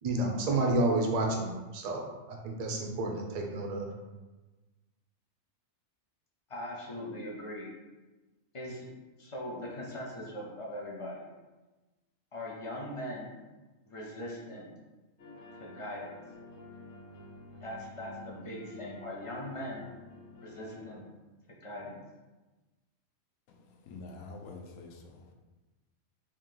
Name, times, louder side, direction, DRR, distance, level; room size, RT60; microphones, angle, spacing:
voice 1, 0.0-2.0 2.3-3.9, right 2 dB, 70° right, 1 dB, 0.3 m, -30 dB
voice 2, 6.5-7.7 8.5-8.9 9.2-11.3 12.3-13.3 13.9-14.7 15.6-16.1 17.6-19.9 20.4-21.0 21.6-22.0, left 1 dB, 50° left, -3 dB, 0.4 m, -40 dB
sound 1, 15.2-21.0, left 2 dB, 65° left, 1.2 m, -50 dB
voice 3, 23.5-25.3, left 3 dB, 85° left, 3 dB, 1.0 m, -47 dB
3.6 x 2.7 x 3.7 m, 1.2 s
omnidirectional pair, 1.5 m